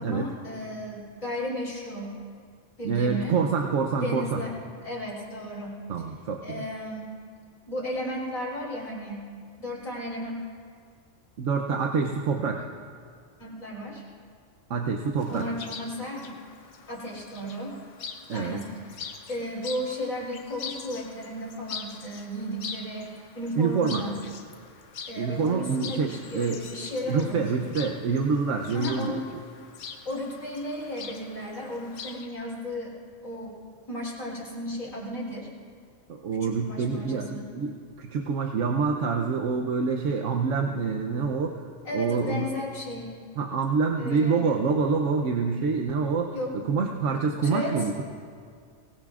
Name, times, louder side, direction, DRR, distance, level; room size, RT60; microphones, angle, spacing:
voice 1, 0.0-2.2 2.8-3.3 3.9-4.5 4.8-5.8 6.4-7.1 7.7-9.2 9.6-10.3 13.4-14.0 15.3-16.4 16.9-17.7 18.3-19.0 19.3-23.1 23.3-24.2 25.1-27.5 28.7-29.2 30.0-32.9 33.2-33.6 33.9-35.5 36.3-37.5 41.8-43.1 44.0-44.5 46.3-46.8 47.3-47.9, equal, 30° left, -8 dB, 3.4 m, -34 dB
voice 2, 2.8-4.4 5.9-6.6 11.4-12.7 14.7-15.5 18.3-18.6 23.6-24.0 25.2-26.6 27.1-29.2 36.1-41.6 41.9-42.5 43.4-48.0, right 5 dB, 80° right, 2 dB, 1.1 m, -26 dB
Chirp tweet, 15.2-32.3, left 6 dB, 80° left, 1.3 m, -43 dB
24.0 x 19.0 x 2.5 m, 2.1 s
omnidirectional pair, 1.3 m